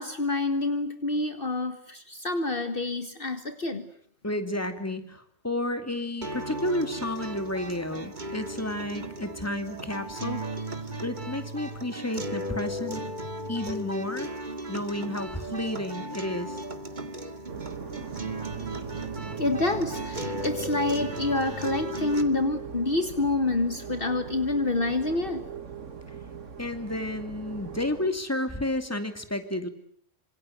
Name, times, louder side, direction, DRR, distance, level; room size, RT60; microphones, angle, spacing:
voice 1, 0.0-3.9 17.2-17.3 19.4-25.4, left 2 dB, 50° left, 9 dB, 1.7 m, -27 dB
voice 2, 4.2-10.4 11.0-13.0 13.5-14.3 14.7-16.6 26.6-29.7, left 1 dB, 10° left, 8 dB, 2.7 m, -31 dB
sound 1, 6.2-22.2, right 1 dB, 40° right, 2.3 m, -36 dB
sound 2, 17.5-28.1, right 7 dB, 80° right, 2.1 m, -39 dB
27.5 x 26.5 x 8.0 m, 0.62 s
omnidirectional pair, 1.3 m